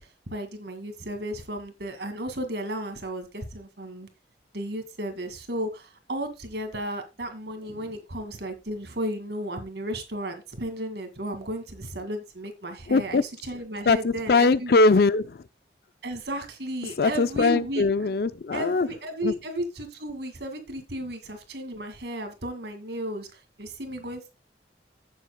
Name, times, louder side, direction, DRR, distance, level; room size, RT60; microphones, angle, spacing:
voice 1, 0.0-4.1 4.5-14.8 16.0-17.8 18.5-24.3, right 1 dB, 65° right, 2.1 m, -34 dB
voice 2, 12.9-13.2 13.9-15.4 17.0-18.9 19.2-19.3, left 3 dB, 55° left, 0.4 m, -21 dB
16.0 x 7.5 x 2.2 m
head